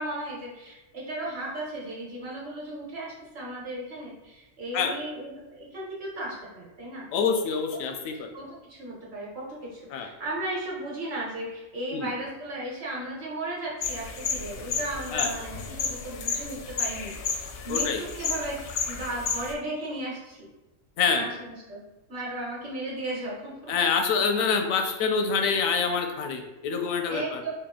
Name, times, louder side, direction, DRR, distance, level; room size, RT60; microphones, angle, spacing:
voice 1, 0.0-7.1 7.7-7.8 8.1-20.5 21.1-21.8 22.1-23.8 27.1-27.5, right 1 dB, 50° right, -4 dB, 1.3 m, -35 dB
voice 2, 7.1-8.3 9.9-10.1 11.9-12.1 15.1-15.3 17.7-18.0 21.0-21.3 23.7-27.4, left 5 dB, 85° left, 5 dB, 1.0 m, -26 dB
sound 1, 13.8-19.5, left 5 dB, 65° left, 0.6 m, -32 dB
4.1 x 2.3 x 3.6 m, 1.0 s
omnidirectional pair, 1.4 m